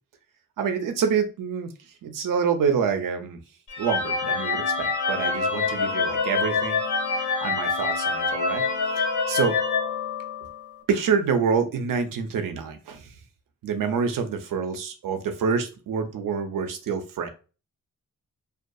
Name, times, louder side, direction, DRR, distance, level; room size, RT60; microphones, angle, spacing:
voice 1, 0.6-1.7 2.0-3.4 3.8-6.8 7.1-8.6 9.0-9.6 10.9-13.1 13.6-17.3, right 6 dB, 85° right, 7 dB, 0.5 m, -27 dB
sound 1, 3.7-10.7, left 4 dB, 65° left, 0.9 m, -26 dB
2.6 x 2.3 x 2.3 m, 0.34 s
wide cardioid pair, 95°, 32 cm